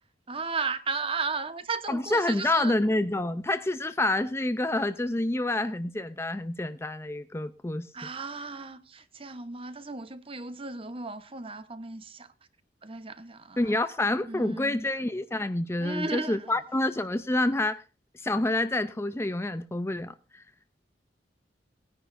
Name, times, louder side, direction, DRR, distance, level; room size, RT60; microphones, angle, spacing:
voice 1, 0.3-2.7 7.9-12.3 12.8-13.7 14.3-14.8 15.8-16.5, right 4 dB, 35° right, 1.0 m, -35 dB
voice 2, 1.9-7.9 13.6-17.8 18.2-20.4, left 2 dB, 15° left, 0.5 m, -28 dB
18.5 x 10.0 x 2.6 m
head